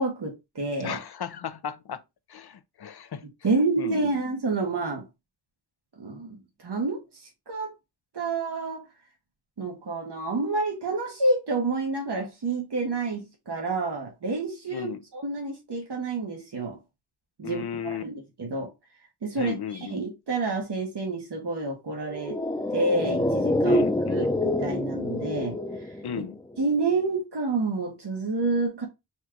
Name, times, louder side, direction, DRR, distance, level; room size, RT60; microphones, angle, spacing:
voice 1, 0.0-1.0 3.4-5.1 6.0-7.7 8.1-8.9 9.6-16.8 17.4-17.6 18.0-18.7 19.2-22.4 22.7-23.8 24.1-25.9 26.6-28.9, right 3 dB, 85° right, 1.3 m, -29 dB
voice 2, 0.8-2.0 2.3-3.3 3.8-4.1 14.7-15.0 17.4-18.0 19.3-20.0 23.7-24.2 26.0-26.4, left 8 dB, 70° left, 0.6 m, -35 dB
sound 1, 22.0-26.6 26.9-27.0, left 1 dB, 10° left, 0.5 m, -26 dB
4.3 x 2.4 x 4.4 m
wide cardioid pair, 70°, 40 cm